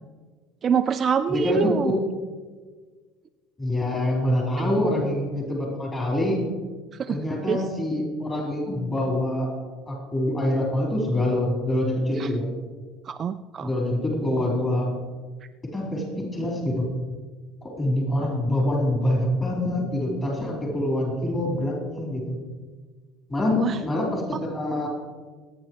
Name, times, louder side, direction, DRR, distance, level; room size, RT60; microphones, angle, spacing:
voice 1, 0.6-1.9 7.0-7.2 7.5-7.6 12.2-12.3 13.1-13.7 23.6-23.8, right 7 dB, 25° right, 8 dB, 0.4 m, -25 dB
voice 2, 1.3-2.1 3.6-6.4 7.1-9.5 9.9-12.5 13.6-14.9 15.7-16.9 17.6-22.4 23.3-24.9, left 1 dB, 20° left, -3 dB, 4.2 m, -25 dB
25.0 x 9.6 x 3.2 m, 1.4 s
cardioid pair, 165°, 0 cm